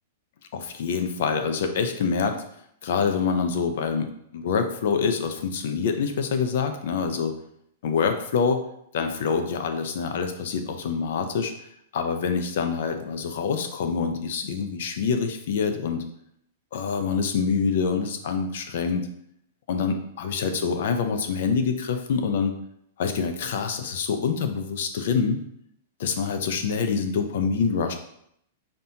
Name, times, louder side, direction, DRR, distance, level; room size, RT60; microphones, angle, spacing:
voice 1, 0.5-2.4 2.8-7.3 7.8-8.6 8.9-11.5 11.9-16.0 16.7-19.1 19.7-22.5 23.0-25.4 26.0-27.9, left 5 dB, 65° left, 6 dB, 0.6 m, -26 dB
5.3 x 2.8 x 2.8 m, 0.72 s
hypercardioid pair, 155°, 0 cm